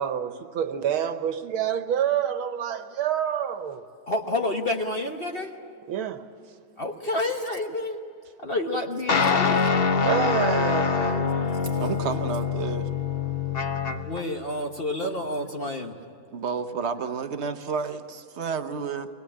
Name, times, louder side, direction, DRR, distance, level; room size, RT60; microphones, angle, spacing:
voice 1, 0.0-3.8 5.9-6.3 10.0-11.5, right 9 dB, 90° right, 1.9 m, -28 dB
voice 2, 4.1-5.6 6.8-8.0 8.4-9.6 14.1-16.0, left 1 dB, 35° left, 1.2 m, -29 dB
sound 1, 9.1-14.2, left 5 dB, 55° left, 0.6 m, -24 dB
voice 3, 11.8-12.9 16.3-19.1, right 6 dB, 45° right, 0.9 m, -31 dB
23.5 x 21.0 x 8.7 m
omnidirectional pair, 2.2 m